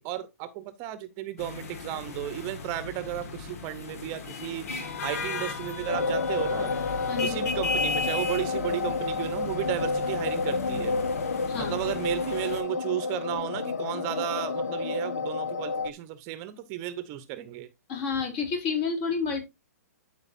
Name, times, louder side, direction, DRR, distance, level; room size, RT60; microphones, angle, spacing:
voice 1, 0.0-4.7 5.0-6.7 7.2-11.0 11.6-17.7, right 13 dB, 35° right, 0.9 m, -34 dB
sound 1, 1.4-12.6, left 4 dB, 60° left, 1.7 m, -36 dB
sound 2, 5.9-15.9, left 4 dB, 90° left, 0.6 m, -30 dB
voice 2, 7.1-7.4 11.5-11.9 17.9-19.4, left 5 dB, 40° left, 3.4 m, -30 dB
13.0 x 4.8 x 2.6 m
hypercardioid pair, 125°, 9 cm